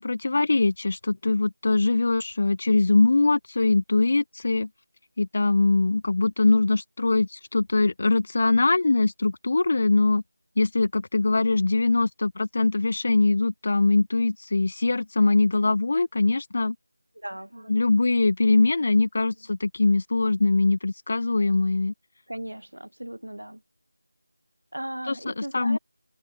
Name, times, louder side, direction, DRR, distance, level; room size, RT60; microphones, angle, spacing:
voice 1, 0.0-4.7 5.2-10.2 10.6-16.8 17.7-21.9 25.1-25.8, left 3 dB, 40° left, 3.8 m, -22 dB
voice 2, 17.1-17.7 22.3-23.6 24.7-25.8, right 1 dB, 85° right, 6.3 m, -37 dB
figure-of-eight pair, 170°, 0 cm